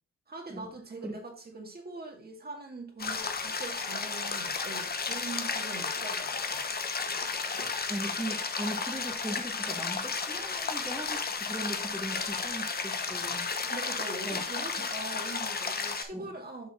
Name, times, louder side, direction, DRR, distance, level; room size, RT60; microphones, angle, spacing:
voice 1, 0.3-6.6 13.6-16.7, right 3 dB, 30° right, 2.3 m, -42 dB
sound 1, 3.0-16.0, left 5 dB, 30° left, 1.1 m, -33 dB
voice 2, 7.6-13.5 14.3-14.4 16.0-16.3, right 1 dB, 5° right, 1.7 m, -39 dB
7.6 x 5.6 x 3.7 m
cardioid pair, 90°, 30 cm